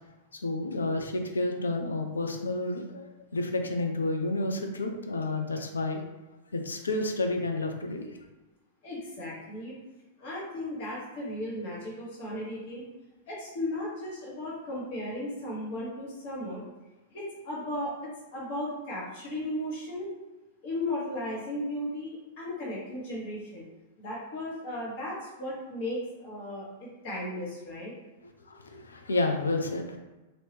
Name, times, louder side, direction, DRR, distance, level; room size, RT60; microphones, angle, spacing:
voice 1, 0.4-3.0 3.3-6.0 6.5-8.1 28.5-30.0, left 2 dB, 80° left, 4 dB, 0.5 m, -30 dB
voice 2, 8.8-9.8 10.2-12.8 13.3-16.6 17.1-20.1 20.6-23.7 24.0-27.9, left 1 dB, 50° left, -6 dB, 1.4 m, -36 dB
2.8 x 2.8 x 3.3 m, 1.1 s
figure-of-eight pair, 100°, 0 cm